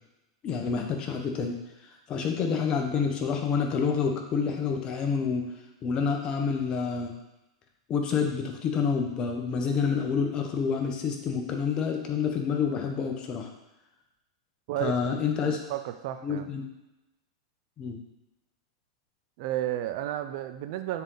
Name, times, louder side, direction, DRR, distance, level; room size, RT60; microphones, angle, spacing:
voice 1, 0.4-1.6 2.1-5.5 5.8-7.1 7.9-13.5 14.8-15.6 16.2-16.6 17.8-18.0, left 6 dB, 30° left, 3 dB, 1.0 m, -28 dB
voice 2, 14.7-16.5 19.4-21.0, right 13 dB, 55° right, 10 dB, 0.4 m, -33 dB
7.3 x 4.0 x 3.9 m, 0.97 s
hypercardioid pair, 120°, 3 cm